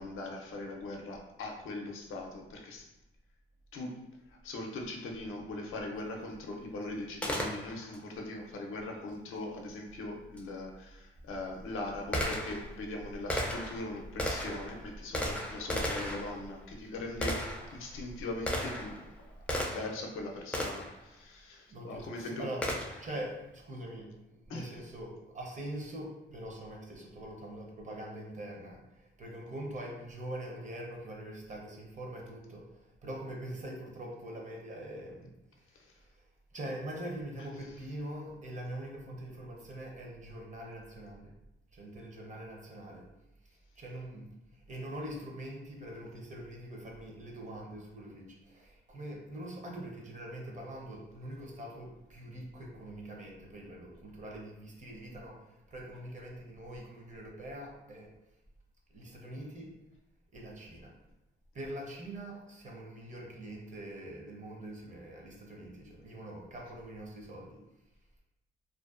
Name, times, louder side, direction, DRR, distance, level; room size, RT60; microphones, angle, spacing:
voice 1, 0.0-2.9 3.7-17.4 17.7-19.1 19.5-22.5 24.5-24.7 35.8-35.9, left 2 dB, 80° left, 1 dB, 0.5 m, -40 dB
Gunshot gunfire, 7.2-8.0 10.4-10.5 11.2-20.0 20.5-21.0 22.6-23.1, equal, 5° left, 0.3 m, -36 dB
voice 2, 21.7-35.3 35.6-36.3 36.5-41.3 41.7-43.1 43.8-58.1 58.9-59.7 60.3-60.9 61.5-67.6, right 1 dB, 35° right, -1 dB, 0.6 m, -43 dB
2.5 x 2.1 x 2.3 m, 0.90 s
cardioid pair, 100°, 21 cm